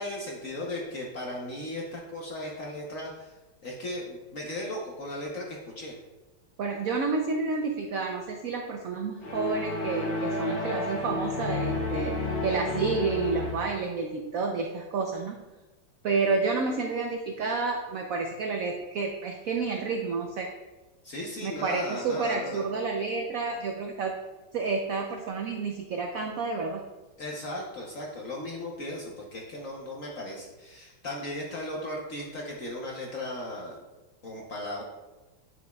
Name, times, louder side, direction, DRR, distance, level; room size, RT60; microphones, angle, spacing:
voice 1, 0.0-6.0 21.0-22.6 27.2-33.8 34.2-34.8, left 1 dB, 55° left, -2 dB, 1.0 m, -36 dB
voice 2, 6.6-12.1 12.4-15.4 16.0-20.5 21.4-24.1 24.5-26.8, right 4 dB, 75° right, 3 dB, 0.8 m, -30 dB
sound 1, 9.2-13.8, left 2 dB, 80° left, 2.3 m, -31 dB
9.5 x 6.1 x 2.3 m, 1.1 s
omnidirectional pair, 2.1 m